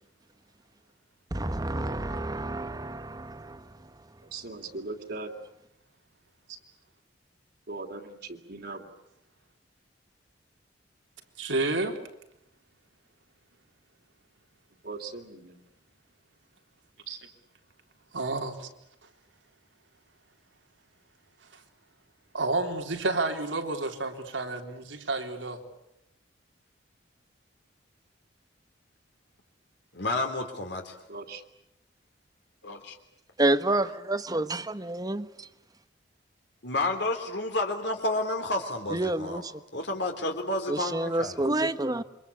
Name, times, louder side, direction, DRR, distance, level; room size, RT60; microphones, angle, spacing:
voice 1, 1.3-4.0 33.4-35.3 38.9-39.6 40.7-42.0, right 2 dB, 20° right, 12 dB, 1.2 m, -29 dB
voice 2, 4.3-5.4 7.7-8.9 14.8-15.6 31.1-31.4, right 3 dB, 60° right, 0 dB, 2.9 m, -39 dB
voice 3, 11.4-12.0 17.1-17.2 18.1-18.7 21.5-21.6 22.3-25.6, right 2 dB, 85° right, 4 dB, 3.7 m, -30 dB
voice 4, 29.9-30.9 32.6-33.0 36.6-39.4 39.7-41.4, left 2 dB, 65° left, 4 dB, 3.4 m, -30 dB
28.0 x 25.0 x 8.6 m, 0.81 s
head